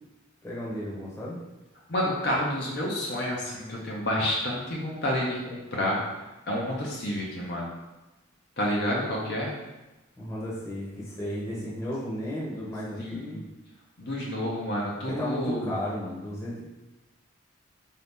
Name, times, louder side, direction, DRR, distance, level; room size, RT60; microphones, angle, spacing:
voice 1, 0.4-1.4 10.2-13.4 15.0-16.6, left 1 dB, 15° left, -7 dB, 0.8 m, -34 dB
voice 2, 1.9-7.7 8.6-9.5 13.0-13.5 14.0-15.7, left 1 dB, 50° left, -4 dB, 0.6 m, -29 dB
4.0 x 2.7 x 3.5 m, 1.0 s
head